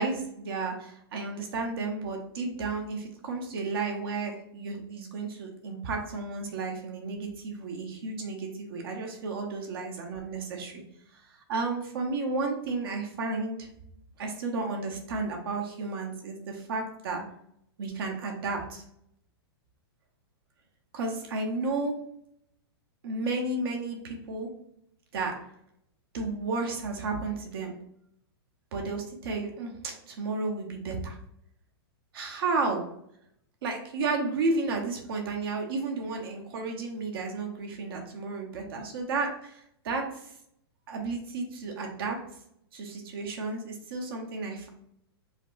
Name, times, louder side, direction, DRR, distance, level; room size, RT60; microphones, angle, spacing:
voice 1, 0.0-10.8 11.1-11.2 11.5-13.7 14.2-17.2 17.8-18.8 20.9-22.0 23.0-24.5 25.1-25.4 26.1-27.7 28.7-31.2 32.1-32.8 33.6-40.1 40.9-42.2 42.7-44.7, right 3 dB, 65° right, 1 dB, 0.9 m, -32 dB
4.2 x 2.1 x 2.5 m, 0.71 s
hypercardioid pair, 145°, 13 cm